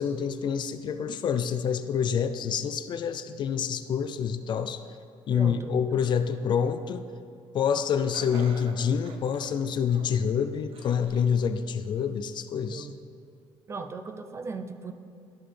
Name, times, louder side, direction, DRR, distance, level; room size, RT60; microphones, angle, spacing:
voice 1, 0.0-4.8 5.3-7.0 7.5-12.9, left 7 dB, 45° left, 10 dB, 0.4 m, -27 dB
voice 2, 5.3-5.7 12.7-13.0 13.7-14.9, right 4 dB, 25° right, 8 dB, 0.4 m, -37 dB
Laughter, 8.1-10.2 10.7-11.4 11.8-11.9 12.9-13.0, right 4 dB, 65° right, 0.8 m, -46 dB
12.5 x 5.9 x 3.3 m, 2.5 s
cardioid pair, 145°, 10 cm